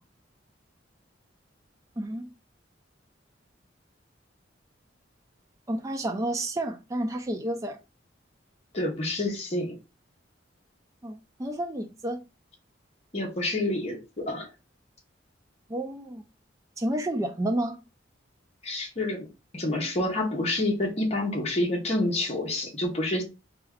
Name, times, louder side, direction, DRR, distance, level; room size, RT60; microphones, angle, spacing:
voice 1, 2.0-2.3 5.7-7.8 11.0-12.2 15.7-16.2 16.8-17.8, right 1 dB, 15° right, 0.4 m, -30 dB
voice 2, 8.7-9.8 13.1-14.5 18.6-19.3 19.5-23.2, left 1 dB, 35° left, 0.9 m, -28 dB
4.2 x 2.4 x 3.5 m
head